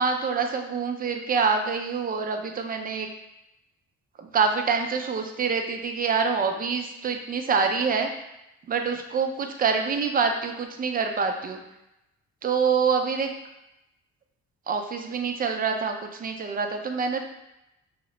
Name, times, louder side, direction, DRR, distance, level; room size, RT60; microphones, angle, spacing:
voice 1, 0.0-3.1 4.2-8.1 8.7-11.6 12.4-13.3 14.7-17.2, right 5 dB, 30° right, 4 dB, 0.4 m, -26 dB
2.8 x 2.0 x 3.9 m, 0.89 s
cardioid pair, 90°, 30 cm